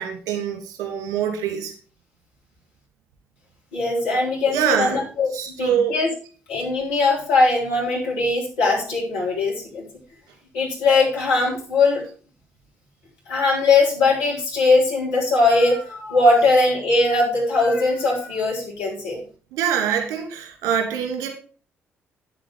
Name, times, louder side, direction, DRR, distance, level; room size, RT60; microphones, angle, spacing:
voice 1, 0.0-1.7 4.5-5.0 5.3-5.9 19.5-21.3, right 9 dB, 60° right, 2 dB, 2.5 m, -24 dB
voice 2, 3.7-5.3 5.6-6.1 6.5-9.9 10.5-12.0 13.3-19.2, left 3 dB, 70° left, -3 dB, 3.7 m, -20 dB
9.3 x 7.8 x 4.7 m, 0.40 s
figure-of-eight pair, 40°, 7 cm